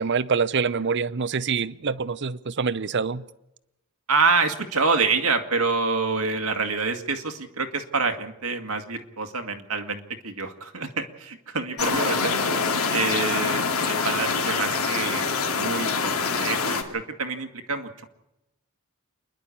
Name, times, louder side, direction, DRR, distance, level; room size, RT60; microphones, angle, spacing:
voice 1, 0.0-3.2, right 5 dB, 55° right, 0.7 m, -25 dB
voice 2, 4.1-12.3 12.9-18.1, right 4 dB, 85° right, 2.0 m, -27 dB
sound 1, 11.8-16.8, left 4 dB, 75° left, 2.6 m, -25 dB
28.0 x 11.0 x 8.6 m
head